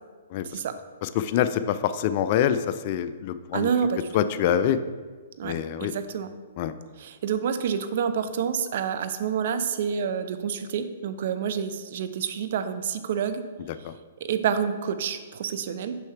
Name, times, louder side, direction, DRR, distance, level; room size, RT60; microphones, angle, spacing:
voice 1, 0.4-0.8 3.5-4.1 5.4-6.3 7.0-13.4 14.2-15.9, right 7 dB, 60° right, 10 dB, 0.5 m, -28 dB
voice 2, 1.0-2.6 2.8-3.7 4.1-4.8 5.4-5.9 6.6-6.7 13.7-13.9, left 10 dB, 45° left, 12 dB, 0.3 m, -25 dB
6.3 x 5.6 x 3.3 m, 1.4 s
hypercardioid pair, 135°, 0 cm